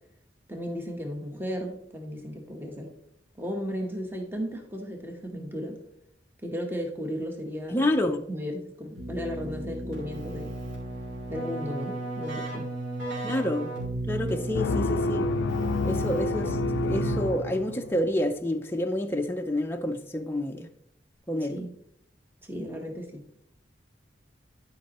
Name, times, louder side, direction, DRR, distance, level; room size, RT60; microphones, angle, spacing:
voice 1, 0.5-2.9 3.3-5.8 6.4-7.9 8.3-10.5 11.3-12.7 21.5-21.7 22.4-23.3, equal, 10° right, 1.0 m, -35 dB
voice 2, 7.7-8.2 13.2-13.7 14.1-15.3 15.8-16.6 16.8-20.7 21.3-21.6, left 1 dB, 10° left, 0.4 m, -28 dB
Keyboard (musical), 9.0-17.7, right 2 dB, 75° right, 2.9 m, -34 dB
sound 1, 14.5-18.1, left 3 dB, 80° left, 0.4 m, -29 dB
11.5 x 5.2 x 2.9 m
head